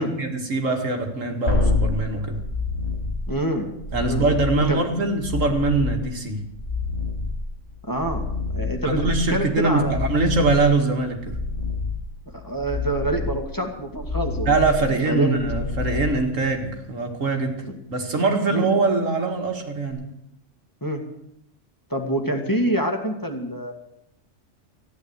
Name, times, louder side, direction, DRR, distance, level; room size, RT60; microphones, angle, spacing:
voice 1, 0.0-2.4 3.9-6.4 8.8-11.4 14.5-17.6 17.9-20.0, right 3 dB, 85° right, 3 dB, 2.4 m, -23 dB
sound 1, 1.5-16.8 19.9-20.0, left 3 dB, 85° left, 5.5 m, -28 dB
voice 2, 3.3-3.7 4.0-4.3 4.7-4.8 7.9-8.2 8.5-10.0 12.3-15.4 17.6-17.7 18.5-18.7 20.8-21.0 21.9-23.7, right 1 dB, 15° left, 2 dB, 1.9 m, -26 dB
14.5 x 10.5 x 8.1 m, 0.79 s
omnidirectional pair, 1.3 m